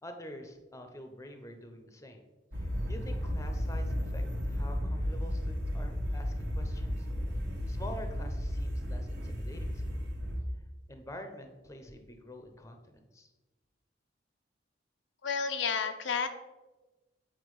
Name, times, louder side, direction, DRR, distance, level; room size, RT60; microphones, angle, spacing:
voice 1, 0.0-2.2 2.5-7.1 7.7-10.0 10.9-13.3, left 1 dB, 15° left, 5 dB, 0.8 m, -47 dB
sound 1, 2.5-10.4, equal, 65° right, 1.6 m, -34 dB
voice 2, 15.2-16.3, left 6 dB, 80° left, 7 dB, 0.7 m, -31 dB
8.4 x 4.7 x 4.8 m, 1.1 s
head